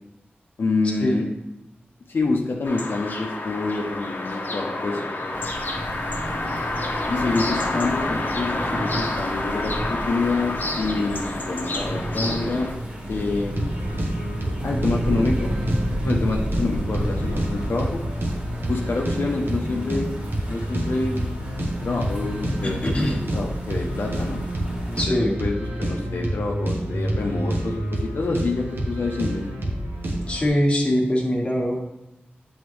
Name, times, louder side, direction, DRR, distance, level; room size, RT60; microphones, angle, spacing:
voice 1, 0.6-1.2 2.1-5.0 7.1-12.7 13.1-13.7 14.6-15.5 16.0-18.0 18.7-20.1 20.5-21.3 21.8-24.4 25.1-29.5, left 3 dB, 75° left, -1 dB, 0.7 m, -27 dB
sound 1, 2.6-12.7, left 2 dB, 55° left, 1.0 m, -29 dB
sound 2, 5.3-25.0, equal, 35° right, 2.3 m, -31 dB
sound 3, 13.5-30.5, right 1 dB, 65° right, 1.2 m, -28 dB
voice 2, 22.6-23.2 25.0-25.3 30.3-31.8, equal, 30° left, -2 dB, 1.5 m, -22 dB
8.0 x 4.0 x 3.2 m, 0.92 s
wide cardioid pair, 70°, 4 cm